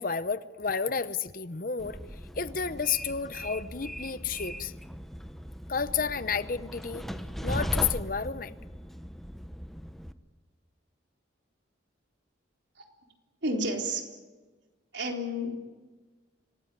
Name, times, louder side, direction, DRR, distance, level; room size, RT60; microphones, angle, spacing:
voice 1, 0.0-2.0 2.4-4.7 5.7-7.0 7.4-8.5, left 6 dB, 45° left, 0.8 m, -31 dB
Train, 1.8-10.1, equal, ahead, 0.9 m, -38 dB
voice 2, 13.4-14.0 14.9-15.6, equal, 70° right, 3.9 m, -31 dB
26.5 x 18.5 x 9.2 m
head